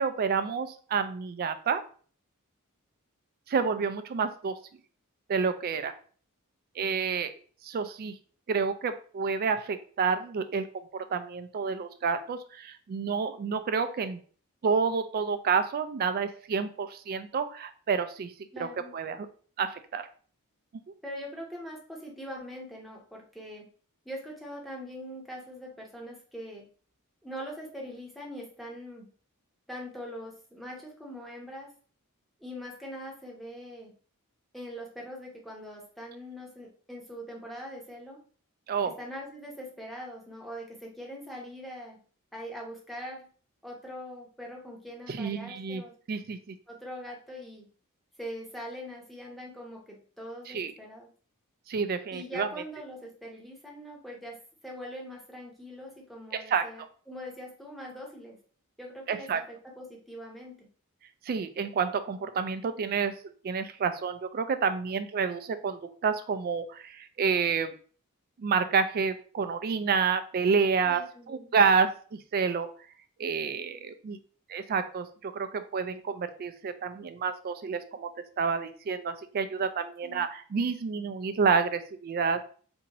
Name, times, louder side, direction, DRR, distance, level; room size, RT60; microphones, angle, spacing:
voice 1, 0.0-1.8 3.5-4.6 5.3-5.9 6.8-7.3 7.6-8.1 8.5-10.7 10.9-14.2 14.6-18.3 18.6-18.7 18.9-19.3 19.6-20.1 38.7-38.9 45.1-45.8 46.1-46.6 50.5-50.7 51.7-52.5 56.3-56.7 59.1-59.4 61.3-63.1 63.4-67.7 68.4-71.0 71.3-72.7 73.2-74.2 74.5-78.1 78.4-82.4, right 5 dB, 45° right, 10 dB, 0.3 m, -29 dB
voice 2, 18.5-19.0 21.0-23.7 24.0-26.7 27.2-29.1 29.7-31.7 32.4-33.9 34.5-38.2 39.0-42.0 42.3-43.3 43.6-45.9 46.7-47.7 48.2-51.1 52.1-54.4 54.6-58.4 58.8-60.7 70.8-71.5 80.0-80.2, equal, ahead, -2 dB, 0.8 m, -42 dB
2.8 x 2.6 x 4.0 m, 0.43 s
head